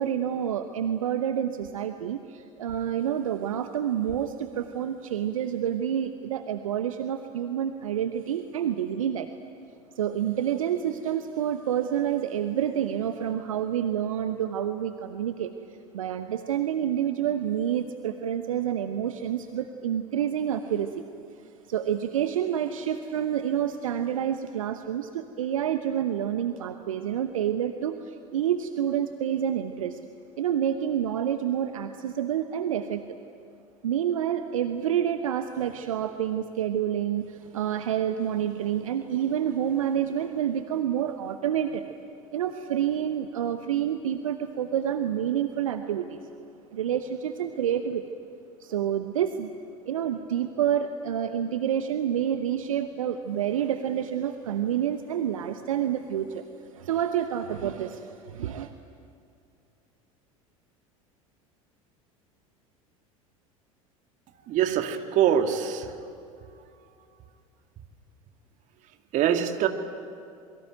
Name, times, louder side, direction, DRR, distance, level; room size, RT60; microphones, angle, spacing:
voice 1, 0.0-9.3 9.9-15.5 15.9-21.0 21.7-30.0 30.4-33.0 33.8-41.8 42.3-46.2 46.7-48.0 48.6-49.5 49.8-56.4 56.7-58.7, right 9 dB, 70° right, 9 dB, 1.0 m, -28 dB
voice 2, 64.4-66.1 66.4-66.6 69.1-69.7, right 9 dB, 45° right, 6 dB, 2.1 m, -24 dB
27.5 x 23.0 x 9.1 m, 2.5 s
figure-of-eight pair, 75°, 18 cm